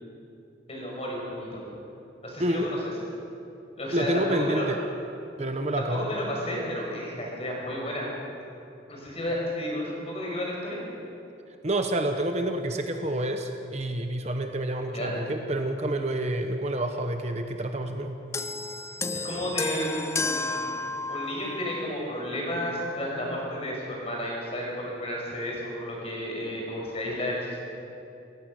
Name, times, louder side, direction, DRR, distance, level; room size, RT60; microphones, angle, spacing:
voice 1, 0.7-1.6 2.2-2.8 3.8-4.7 5.8-8.0 8.9-10.9 14.9-15.1 19.1-20.7 21.1-27.6, left 1 dB, 30° left, -2 dB, 6.0 m, -32 dB
voice 2, 2.4-2.7 3.9-4.8 5.4-6.1 11.6-18.2, right 1 dB, 35° right, 5 dB, 1.1 m, -28 dB
sound 1, 18.3-21.9 22.8-23.0, left 3 dB, 15° left, 0.4 m, -32 dB
28.5 x 15.5 x 6.6 m, 2.8 s
head